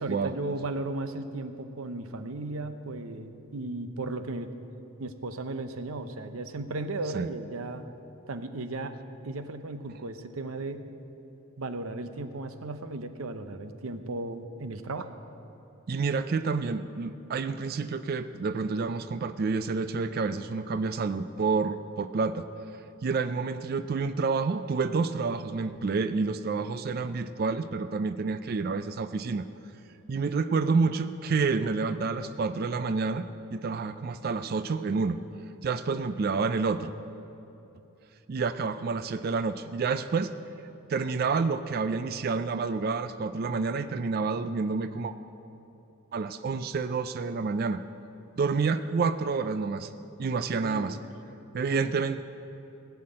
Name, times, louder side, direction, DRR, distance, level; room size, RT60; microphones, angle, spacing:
voice 1, 0.0-4.5 5.0-7.8 8.3-9.0 9.2-10.9 11.6-15.1 50.6-51.0, right 2 dB, 75° right, 9 dB, 0.7 m, -35 dB
voice 2, 15.9-22.5 23.0-29.5 30.1-35.2 35.6-36.9 38.3-40.3 40.9-45.1 46.1-47.8 48.4-49.9 50.2-51.0 51.5-52.2, right 4 dB, 45° right, 11 dB, 0.3 m, -29 dB
16.5 x 5.8 x 8.7 m, 3.0 s
head